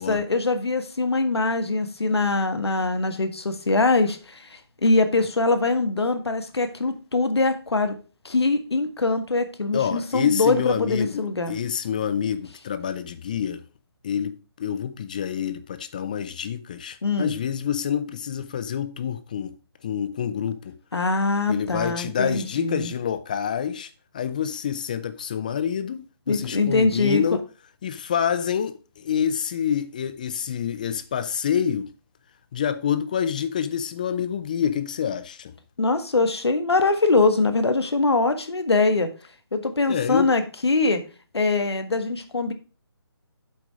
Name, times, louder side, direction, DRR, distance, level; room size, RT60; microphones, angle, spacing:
voice 1, 0.0-7.9 8.2-11.6 17.0-17.3 20.9-22.9 26.3-27.2 35.8-39.1 39.5-41.0 41.3-42.5, left 3 dB, 80° left, 1.7 m, -23 dB
voice 2, 9.7-13.6 14.0-19.6 19.8-20.8 21.5-27.4 27.8-31.9 32.5-35.5 39.9-40.3, left 8 dB, 20° left, 0.3 m, -27 dB
7.8 x 6.0 x 4.8 m
figure-of-eight pair, 155°, 13 cm